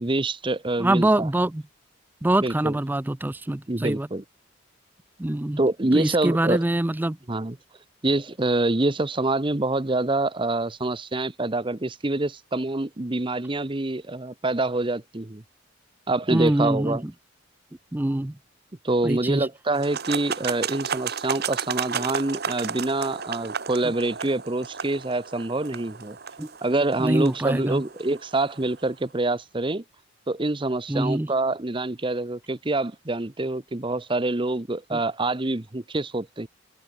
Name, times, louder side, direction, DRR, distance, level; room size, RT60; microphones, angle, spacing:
voice 1, 0.0-1.3 2.4-2.8 3.7-4.2 5.6-6.6 7.3-7.6 8.0-15.4 16.1-17.0 18.8-26.2 26.6-29.8 30.3-36.5, right 2 dB, 25° right, 0.9 m, -26 dB
voice 2, 0.8-1.6 2.2-4.1 5.2-5.6 5.9-7.2 16.3-17.1 17.9-18.4 19.0-19.5 26.4-26.5 27.0-27.8 30.9-31.3 34.9-35.0, right 1 dB, 10° right, 0.4 m, -24 dB
sound 1, 19.7-28.8, right 6 dB, 50° right, 1.4 m, -33 dB
head